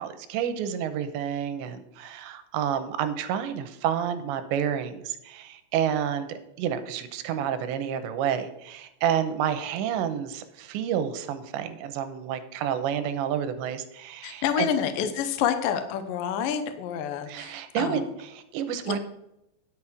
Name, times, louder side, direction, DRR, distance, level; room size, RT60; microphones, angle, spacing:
voice 1, 0.0-14.7 17.3-19.0, right 9 dB, 90° right, 9 dB, 3.1 m, -29 dB
voice 2, 14.2-18.1 18.9-19.0, left 8 dB, 75° left, 8 dB, 2.0 m, -28 dB
10.5 x 7.3 x 4.8 m, 0.87 s
omnidirectional pair, 5.1 m